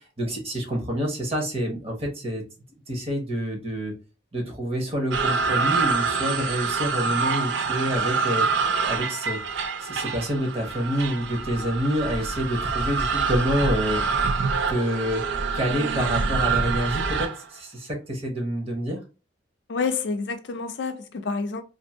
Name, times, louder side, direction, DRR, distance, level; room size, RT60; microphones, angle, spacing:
voice 1, 0.2-2.4 2.9-3.9 4.3-8.4 8.8-14.0 14.7-15.2 15.5-19.0, equal, 30° right, 0.9 m, -27 dB
sound 1, 5.1-17.4, right 5 dB, 75° right, 0.4 m, -26 dB
voice 2, 19.7-21.6, left 4 dB, 65° left, 0.5 m, -28 dB
2.6 x 2.6 x 2.7 m
head